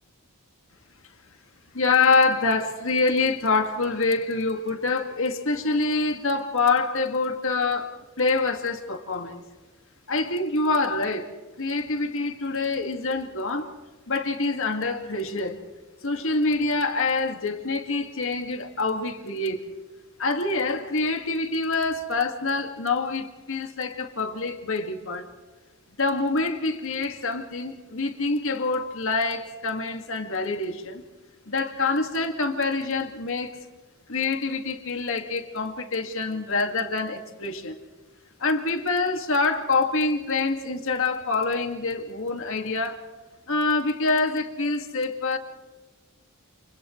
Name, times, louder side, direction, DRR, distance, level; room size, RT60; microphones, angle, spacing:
voice 1, 1.7-9.4 10.1-13.7 14.1-15.6 16.0-19.7 20.2-25.3 26.0-31.0 31.5-33.6 34.1-37.7 38.4-43.0 43.5-45.4, left 3 dB, 65° left, 2.2 m, -26 dB
30.0 x 29.0 x 3.3 m
head